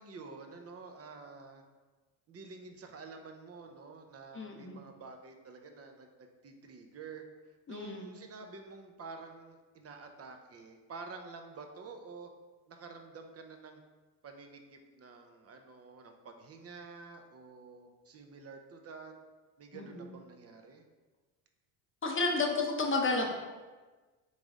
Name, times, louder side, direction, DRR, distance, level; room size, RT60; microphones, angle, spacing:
voice 1, 0.0-1.6 2.3-12.3 12.7-13.8 14.2-19.2 19.6-20.8, right 4 dB, 30° right, 5 dB, 0.6 m, -49 dB
voice 2, 4.3-4.8 7.7-8.2 19.7-20.1 22.0-23.3, left 3 dB, 25° left, 1 dB, 0.7 m, -32 dB
3.9 x 3.2 x 3.6 m, 1.3 s
supercardioid pair, 75°, 49 cm